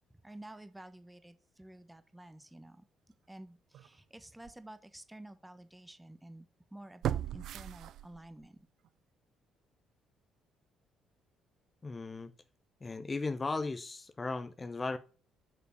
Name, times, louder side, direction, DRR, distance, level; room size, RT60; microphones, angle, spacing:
voice 1, 0.2-2.8 3.3-6.4 6.7-8.6, right 1 dB, 10° right, 1.3 m, -51 dB
sound 1, 3.7-3.9 4.4-4.5 7.0-8.5 8.8-8.9, right 11 dB, 55° right, 0.4 m, -36 dB
voice 2, 11.8-12.3 12.8-15.0, left 3 dB, 25° left, 0.8 m, -36 dB
6.9 x 6.7 x 6.7 m
figure-of-eight pair, 45°, 0 cm